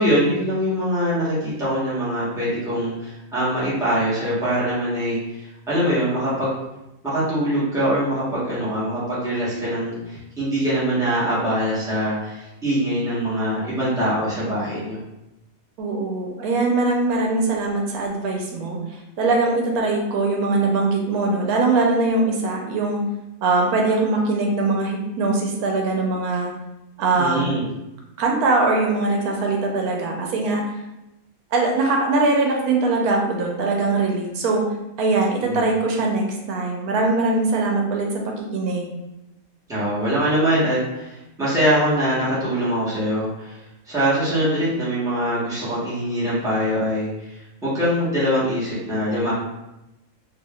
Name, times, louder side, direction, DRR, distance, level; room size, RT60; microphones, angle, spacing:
voice 1, 0.0-5.2 5.7-6.5 7.0-15.0 27.2-27.6 35.4-35.6 39.7-43.6 43.9-47.3 47.6-49.3, equal, 5° right, -10 dB, 0.9 m, -23 dB
voice 2, 15.8-23.0 23.4-26.5 27.0-27.5 28.2-30.6 31.5-34.6 35.0-38.9, right 3 dB, 85° right, 0 dB, 1.1 m, -21 dB
3.5 x 2.5 x 2.3 m, 0.92 s
omnidirectional pair, 1.5 m